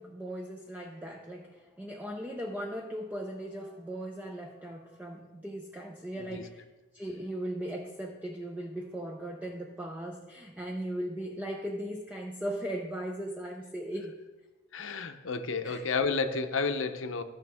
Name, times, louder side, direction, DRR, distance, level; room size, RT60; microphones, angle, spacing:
voice 1, 0.0-6.6 6.9-14.2 15.6-15.8, right 1 dB, 10° right, 1 dB, 0.5 m, -38 dB
voice 2, 14.7-17.2, left 4 dB, 70° left, 8 dB, 0.7 m, -31 dB
15.0 x 5.9 x 3.5 m, 1.2 s
head